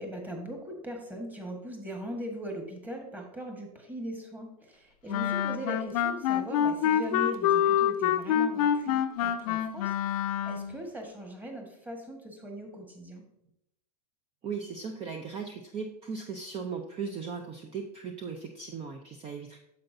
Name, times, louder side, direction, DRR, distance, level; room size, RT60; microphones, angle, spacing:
voice 1, 0.0-13.2, equal, 10° right, 2 dB, 1.5 m, -40 dB
Wind instrument woodwind instrument, 5.1-10.8, left 10 dB, 65° left, 0.6 m, -26 dB
voice 2, 14.4-19.6, right 5 dB, 30° right, 4 dB, 0.7 m, -37 dB
9.5 x 6.9 x 2.7 m, 0.83 s
supercardioid pair, 130°, 21 cm